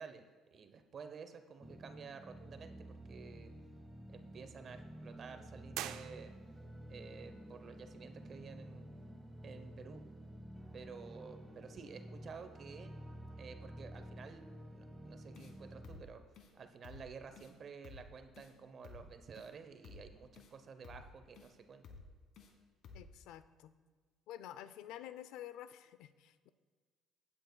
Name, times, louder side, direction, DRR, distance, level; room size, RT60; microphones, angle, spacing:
voice 1, 0.0-3.5 4.1-6.3 6.9-8.9 9.4-10.0 10.7-12.9 13.4-16.2 16.5-21.8, right 5 dB, 40° right, 8 dB, 0.7 m, -52 dB
sound 1, 1.6-16.0, equal, 10° right, 0.8 m, -51 dB
sound 2, 5.7-6.8, right 12 dB, 80° right, 0.4 m, -44 dB
sound 3, 15.3-15.5 15.8-16.1 16.3-16.5 16.8-17.1 17.3-17.5 17.8-18.1 18.3-18.5 18.8-19.1 19.3-19.5 19.8-20.1 20.3-20.5 20.8-21.1 21.3-21.5 21.8-22.1 22.3-22.5 22.8-23.1, left 4 dB, 60° left, 1.4 m, -54 dB
voice 2, 22.9-23.7 24.3-26.5, left 11 dB, 80° left, 13 dB, 0.4 m, -50 dB
16.0 x 8.9 x 2.3 m, 1.5 s
cardioid pair, 120°, 0 cm